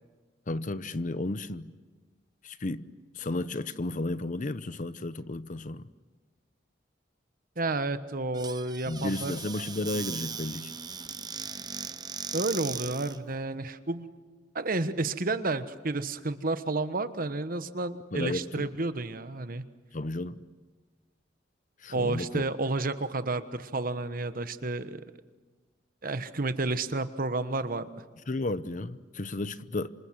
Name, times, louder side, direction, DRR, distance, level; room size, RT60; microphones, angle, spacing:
voice 1, 0.5-1.7 2.4-2.9 3.1-5.9 8.9-10.7 18.1-18.7 19.9-20.4 21.8-22.5 28.3-29.9, left 2 dB, 45° left, 0.8 m, -33 dB
voice 2, 7.6-9.3 12.3-14.1 14.5-19.6 21.9-25.0 26.0-27.9, right 2 dB, 50° right, 1.2 m, -31 dB
Squeak / Cupboard open or close, 8.3-13.2, right 6 dB, 20° right, 0.8 m, -38 dB
27.5 x 26.5 x 7.6 m
head